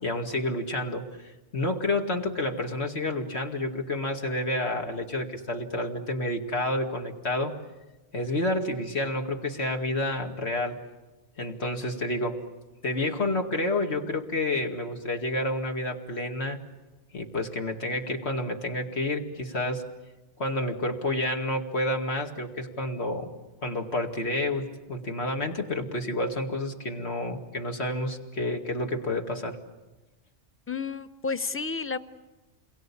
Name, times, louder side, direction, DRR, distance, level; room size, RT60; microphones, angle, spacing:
voice 1, 0.0-7.6 8.1-10.8 11.4-12.4 12.8-16.6 17.1-19.8 20.4-23.3 23.6-29.6, left 1 dB, 65° left, 3 dB, 2.5 m, -29 dB
voice 2, 30.7-32.0, left 4 dB, 15° left, 10 dB, 0.8 m, -31 dB
29.0 x 22.5 x 8.6 m, 1.1 s
omnidirectional pair, 1.2 m